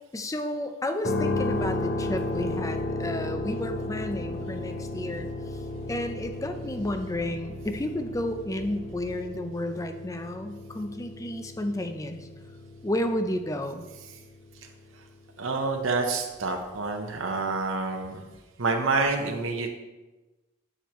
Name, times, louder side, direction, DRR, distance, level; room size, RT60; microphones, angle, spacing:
voice 1, 0.1-5.6 5.9-12.3 12.8-13.9, left 1 dB, 15° left, 7 dB, 0.5 m, -32 dB
sound 1, 1.0-15.1, left 2 dB, 50° left, 0.8 m, -34 dB
sound 2, 1.2-9.2, equal, 55° right, 1.1 m, -44 dB
voice 2, 15.4-18.2 18.6-19.7, right 3 dB, 85° right, 3 dB, 0.9 m, -27 dB
8.9 x 6.9 x 3.0 m, 1.2 s
head